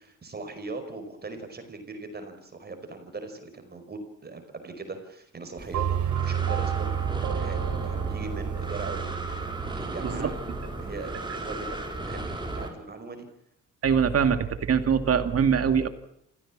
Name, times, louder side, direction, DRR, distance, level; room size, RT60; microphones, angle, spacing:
voice 1, 0.0-9.1 9.7-10.3 10.6-13.3, right 3 dB, 35° right, 8 dB, 5.1 m, -40 dB
Breathing, 5.6-12.7, right 2 dB, 15° right, 4.9 m, -35 dB
sound 1, 5.7-9.9, right 9 dB, 70° right, 3.7 m, -30 dB
voice 2, 13.8-15.9, right 7 dB, 50° right, 9 dB, 2.3 m, -23 dB
27.0 x 16.0 x 7.5 m, 0.76 s
cardioid pair, 90°, 30 cm